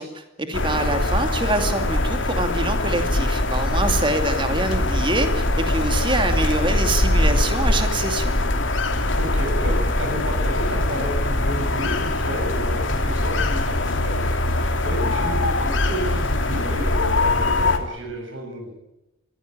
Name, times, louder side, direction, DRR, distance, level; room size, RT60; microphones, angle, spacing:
voice 1, 0.0-8.4, right 2 dB, 25° right, 6 dB, 2.5 m, -25 dB
sound 1, 0.5-17.8, left 2 dB, 80° left, 2.9 m, -22 dB
voice 2, 3.7-4.1 9.1-14.4 14.8-18.7, right 1 dB, 85° right, 2 dB, 7.5 m, -31 dB
22.5 x 16.0 x 8.9 m, 0.96 s
head